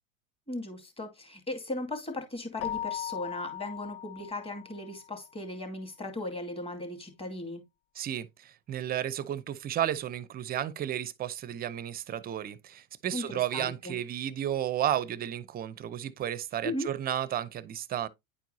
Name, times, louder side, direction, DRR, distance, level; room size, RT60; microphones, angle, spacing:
voice 1, 0.5-7.6 13.1-14.0 16.6-16.9, left 1 dB, 15° left, 2.2 m, -37 dB
Keyboard (musical), 2.6-5.1, left 11 dB, 35° left, 0.5 m, -38 dB
voice 2, 8.0-18.1, right 11 dB, 20° right, 0.6 m, -33 dB
10.0 x 4.5 x 2.7 m
hypercardioid pair, 110°, 41 cm